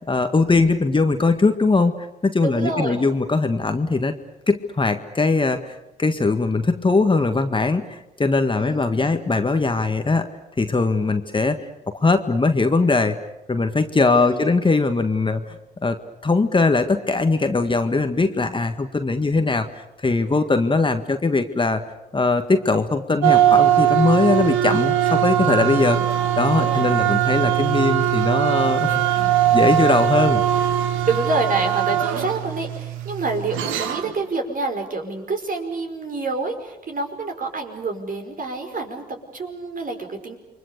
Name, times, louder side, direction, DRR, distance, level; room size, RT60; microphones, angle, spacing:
voice 1, 0.1-4.2 4.5-10.3 10.6-13.2 13.5-16.0 16.2-21.8 22.1-26.0 26.4-30.4, left 3 dB, 25° left, 7 dB, 1.8 m, -20 dB
voice 2, 2.4-3.1 8.6-9.2 14.0-14.5 25.9-26.3 26.6-26.9 31.1-40.4, right 3 dB, 40° right, 4 dB, 5.2 m, -28 dB
sound 1, 23.2-34.2, right 11 dB, 70° right, 1.6 m, -20 dB
29.0 x 23.5 x 6.8 m, 0.94 s
hypercardioid pair, 50°, 21 cm